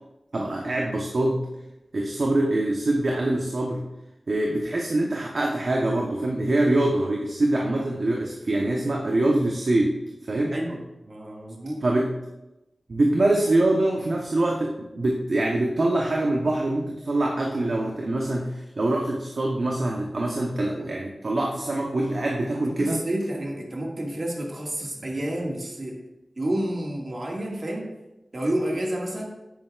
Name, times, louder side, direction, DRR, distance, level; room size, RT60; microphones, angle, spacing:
voice 1, 0.3-1.4 1.9-3.8 4.3-10.0 10.3-10.6 11.8-12.1 12.9-23.0, right 1 dB, 65° right, -1 dB, 0.9 m, -24 dB
voice 2, 10.5-11.8 22.6-26.0 26.4-27.9 28.3-29.3, right 1 dB, 50° right, -1 dB, 1.9 m, -30 dB
9.5 x 8.8 x 2.4 m, 0.97 s
wide cardioid pair, 80°, 0 cm